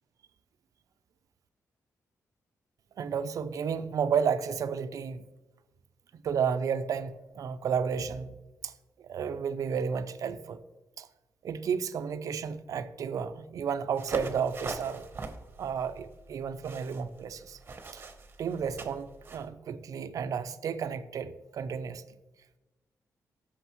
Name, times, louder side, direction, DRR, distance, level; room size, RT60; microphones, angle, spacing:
voice 1, 3.0-5.2 6.1-8.3 8.6-8.7 9.0-10.6 11.0-11.1 11.4-15.0 15.6-17.6 17.9-18.0 18.4-22.0, right 7 dB, 65° right, 0.5 m, -32 dB
sound 1, 14.0-19.5, right 3 dB, 35° right, 0.9 m, -41 dB
13.5 x 6.5 x 3.0 m
wide cardioid pair, 135°, 6 cm